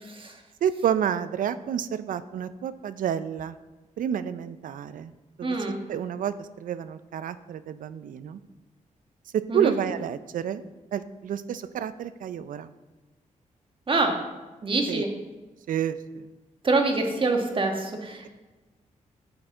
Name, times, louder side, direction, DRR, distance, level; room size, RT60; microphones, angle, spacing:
voice 1, 0.6-3.5 4.0-5.1 5.4-5.6 5.9-8.4 9.3-10.6 10.9-12.7 14.9-15.0 15.7-16.3, right 9 dB, 85° right, 13 dB, 0.5 m, -29 dB
voice 2, 5.4-5.8 9.5-9.7 13.9-14.2 14.6-15.1 16.6-18.3, right 3 dB, 40° right, 3 dB, 1.4 m, -25 dB
10.5 x 7.8 x 3.8 m, 1.2 s
cardioid pair, 100°, 14 cm